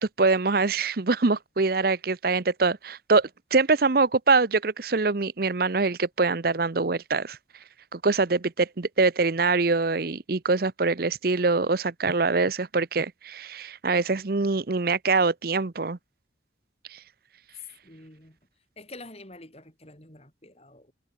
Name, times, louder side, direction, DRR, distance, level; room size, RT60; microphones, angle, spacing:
voice 1, 0.0-7.4 7.9-16.0 16.9-17.0, right 3 dB, 50° right, 0.8 m, -24 dB
voice 2, 17.5-18.4 18.8-20.9, left 3 dB, 35° left, 6.8 m, -46 dB
head